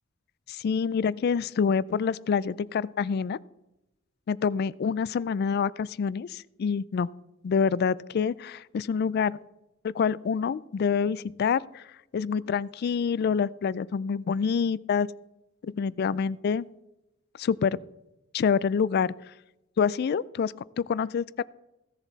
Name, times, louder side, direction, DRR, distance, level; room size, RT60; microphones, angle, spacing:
voice 1, 0.5-3.4 4.3-7.1 7.4-9.4 9.8-11.8 12.1-15.1 15.6-16.7 17.4-17.8 18.3-19.1 19.8-21.4, left 6 dB, 50° left, 21 dB, 0.3 m, -27 dB
16.0 x 7.2 x 4.0 m, 0.94 s
head